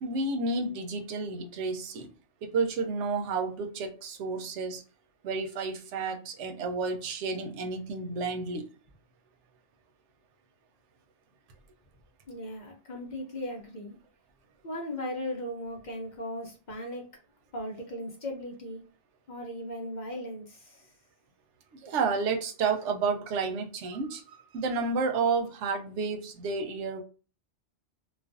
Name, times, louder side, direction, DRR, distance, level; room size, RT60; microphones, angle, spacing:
voice 1, 0.0-2.1 2.4-4.8 5.2-8.6 21.7-27.0, right 4 dB, 90° right, 0.9 m, -31 dB
voice 2, 12.3-13.9 14.6-17.1 17.5-18.8 19.3-20.9, left 1 dB, 50° left, 0.6 m, -37 dB
2.4 x 2.2 x 2.4 m
omnidirectional pair, 1.2 m